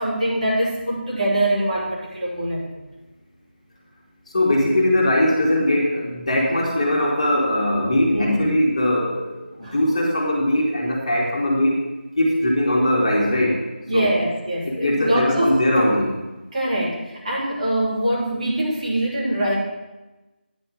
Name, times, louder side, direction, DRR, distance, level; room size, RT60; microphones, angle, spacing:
voice 1, 0.0-2.7 8.1-8.5 9.6-9.7 13.9-15.6 16.5-19.5, right 1 dB, 45° right, -5 dB, 2.9 m, -23 dB
voice 2, 4.3-11.8 12.2-13.6 13.9-14.1 14.6-16.1, left 1 dB, 35° left, -2 dB, 1.6 m, -20 dB
9.8 x 4.4 x 6.9 m, 1.1 s
figure-of-eight pair, 170°, 6 cm